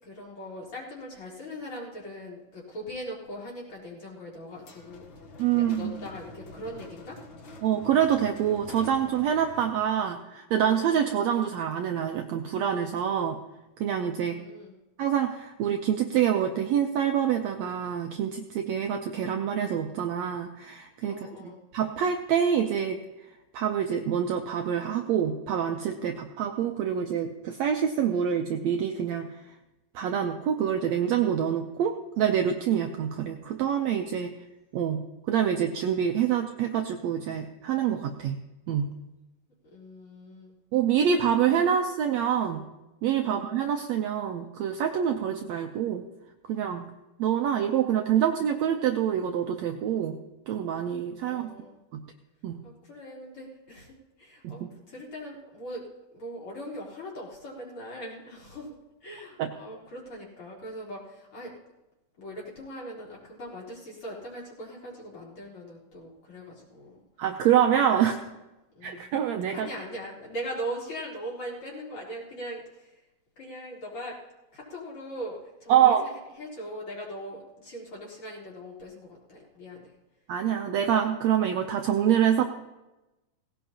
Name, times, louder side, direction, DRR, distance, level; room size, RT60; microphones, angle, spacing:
voice 1, 0.0-5.0 5.5-7.2 14.2-14.8 21.1-21.6 39.6-40.6 41.3-41.4 43.2-43.5 51.2-51.8 52.6-55.8 56.1-58.7 59.0-61.5 62.2-67.0 67.9-68.3 68.7-69.1 69.5-73.0 73.4-74.2 74.5-79.9, equal, 40° left, -5 dB, 4.4 m, -40 dB
sound 1, 4.6-10.0, left 2 dB, 65° left, 1.2 m, -47 dB
voice 2, 5.4-5.9 7.6-13.4 13.8-14.4 15.0-21.3 21.7-23.0 23.5-29.3 29.9-34.3 34.7-38.4 38.7-39.0 40.7-42.6 43.0-46.0 46.5-46.8 47.2-50.2 50.5-51.5 51.9-52.0 52.4-52.6 54.4-54.5 59.4-59.5 67.2-68.2 68.8-69.7 75.7-76.1 80.3-82.4, right 9 dB, 85° right, 5 dB, 1.5 m, -26 dB
18.5 x 17.0 x 2.9 m, 1.0 s
omnidirectional pair, 4.0 m